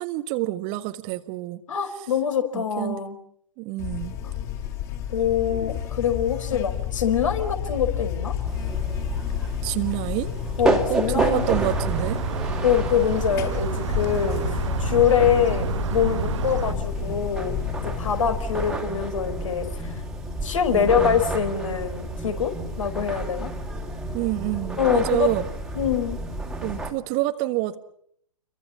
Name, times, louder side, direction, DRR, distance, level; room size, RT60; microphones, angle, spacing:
voice 1, 0.0-1.6 2.5-3.0 3.6-4.1 9.6-10.3 10.9-12.2 20.7-21.2 24.1-25.4 26.6-27.8, right 17 dB, 25° right, 9 dB, 1.4 m, -27 dB
voice 2, 1.7-3.2 4.2-4.3 5.1-8.3 10.6-11.7 12.6-17.5 17.8-19.9 20.4-23.5 24.8-25.3 25.7-26.2, left 8 dB, 55° left, 8 dB, 4.9 m, -24 dB
Buzz, 3.8-18.8, left 10 dB, 30° left, 4.8 m, -31 dB
sound 1, 8.4-26.9, right 2 dB, 5° right, 2.7 m, -31 dB
sound 2, 11.3-16.7, right 9 dB, 50° right, 1.1 m, -30 dB
28.5 x 23.5 x 7.2 m, 0.67 s
figure-of-eight pair, 120°, 19 cm